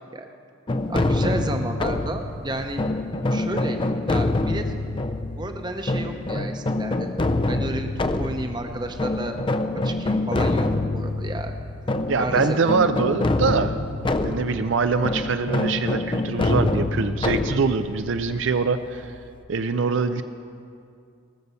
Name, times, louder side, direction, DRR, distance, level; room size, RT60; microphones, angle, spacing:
sound 1, 0.7-19.4, left 2 dB, 25° left, 0.4 m, -26 dB
voice 1, 0.9-2.8 3.3-3.8 4.1-4.6 5.4-7.1 7.5-7.9 8.2-9.4 9.8-10.7 10.9-11.5 12.2-12.6, right 1 dB, 20° right, 5 dB, 0.8 m, -31 dB
voice 2, 12.1-13.7 14.2-19.1 19.5-20.2, right 4 dB, 70° right, 10 dB, 0.5 m, -23 dB
18.5 x 6.8 x 6.9 m, 2.4 s
head